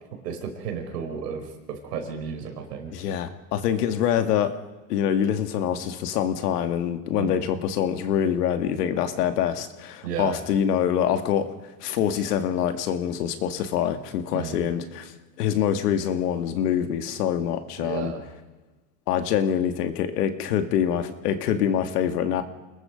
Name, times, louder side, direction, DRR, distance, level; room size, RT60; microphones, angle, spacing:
voice 1, 0.2-2.9 7.1-7.3 10.0-10.4 14.3-14.7 17.8-18.2, right 7 dB, 85° right, 4 dB, 5.3 m, -33 dB
voice 2, 2.9-4.5 4.9-11.5 11.8-15.1 15.4-18.1 19.1-22.4, left 9 dB, 75° left, 8 dB, 2.3 m, -25 dB
29.0 x 20.5 x 5.3 m, 1.2 s
supercardioid pair, 125°, 47 cm